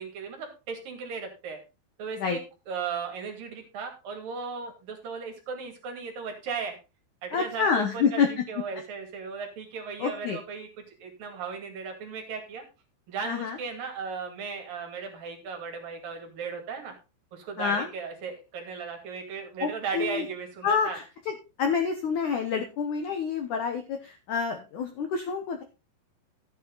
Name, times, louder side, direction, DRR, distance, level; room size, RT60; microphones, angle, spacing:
voice 1, 0.0-1.6 2.0-2.4 2.7-6.8 7.2-12.6 13.1-16.9 17.3-21.0, right 5 dB, 50° right, 3 dB, 3.8 m, -36 dB
voice 2, 7.3-8.4 10.0-10.4 13.2-13.6 17.6-17.9 19.6-20.3 20.6-21.3 21.6-25.6, left 6 dB, 90° left, 6 dB, 1.7 m, -28 dB
14.0 x 8.4 x 3.9 m, 0.30 s
omnidirectional pair, 5.4 m